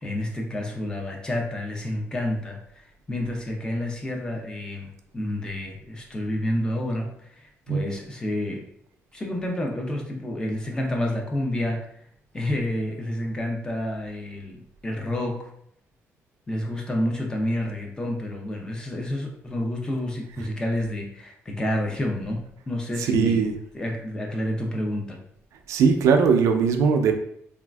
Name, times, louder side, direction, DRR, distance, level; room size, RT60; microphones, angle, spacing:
voice 1, 0.0-8.6 9.1-11.8 12.3-15.4 16.5-23.4 23.7-25.2, left 1 dB, 15° left, 0 dB, 0.5 m, -29 dB
voice 2, 23.0-23.5 25.7-27.1, right 6 dB, 85° right, 5 dB, 0.4 m, -20 dB
3.4 x 2.4 x 2.2 m, 0.69 s
cardioid pair, 170°, 5 cm